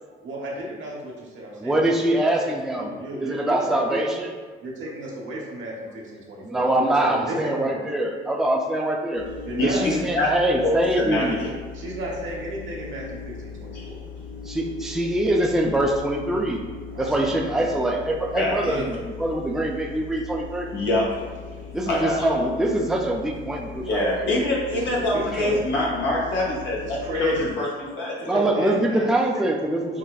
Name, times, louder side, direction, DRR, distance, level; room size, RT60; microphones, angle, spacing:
voice 1, 0.2-4.1 4.6-7.7 9.4-9.9 11.7-14.0 16.9-17.6 18.7-18.9 24.7-25.6 26.8-27.5 28.2-29.1 29.3-29.5 29.9-30.0, right 1 dB, 75° right, -3 dB, 1.0 m, -34 dB
voice 2, 1.6-2.9 3.2-4.3 6.5-9.3 9.6-11.4 14.5-16.6 17.0-20.7 21.7-23.8 25.4-25.5 28.3-30.0, right 1 dB, ahead, 0 dB, 0.4 m, -24 dB
sound 1, 9.1-27.5, left 5 dB, 45° left, 0.7 m, -39 dB
voice 3, 9.6-10.3 10.6-11.5 13.7-13.9 18.4-18.6 20.7-21.2 21.9-22.1 23.9-28.4, left 1 dB, 70° left, -4 dB, 0.9 m, -25 dB
5.6 x 2.1 x 2.3 m, 1.5 s
cardioid pair, 90°, 20 cm